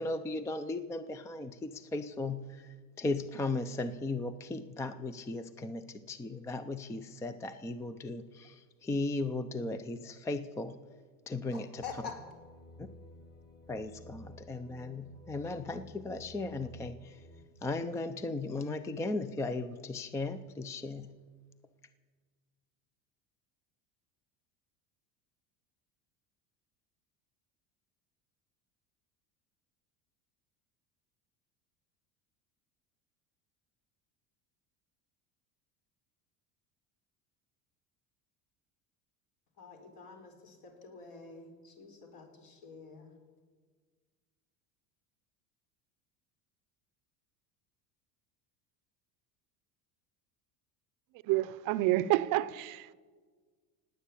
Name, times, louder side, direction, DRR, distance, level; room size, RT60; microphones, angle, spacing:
voice 1, 0.0-10.8 11.3-12.0 12.8-12.9 13.7-17.3 17.6-21.2, left 2 dB, 10° left, 0.4 m, -37 dB
voice 2, 11.5-12.1 39.6-43.1, left 5 dB, 60° left, 4.3 m, -47 dB
sound 1, 11.8-17.4, left 1 dB, 25° left, 2.1 m, -53 dB
voice 3, 51.2-52.9, right 16 dB, 50° right, 0.6 m, -29 dB
17.5 x 9.4 x 8.4 m
cardioid pair, 145°, 40 cm